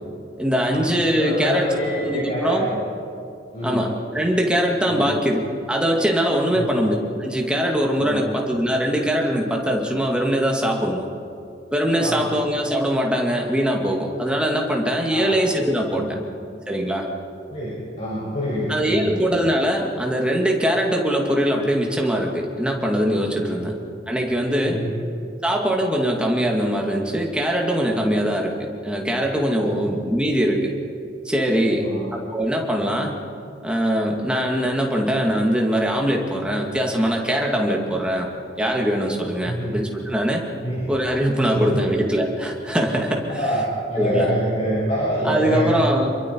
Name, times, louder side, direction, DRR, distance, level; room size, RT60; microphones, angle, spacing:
voice 1, 0.4-2.6 3.6-5.4 5.7-11.1 11.7-16.0 16.7-17.1 18.7-23.7 24.1-24.8 25.4-30.7 31.2-33.2 33.6-38.3 38.6-40.4 40.9-43.3 44.0-44.3 45.2-46.1, equal, 5° right, 0 dB, 2.3 m, -22 dB
voice 2, 1.2-2.8 3.5-3.8 4.9-5.1 6.5-6.8 8.0-8.2 12.0-12.3 15.1-15.3 16.0-16.2 17.5-19.2 23.4-23.6 24.6-24.9 29.6-29.8 31.7-32.1 39.4-39.7 40.6-40.9 41.5-41.9 43.4-45.7, equal, 40° left, -8 dB, 5.9 m, -26 dB
27.5 x 22.5 x 4.7 m, 2.5 s
head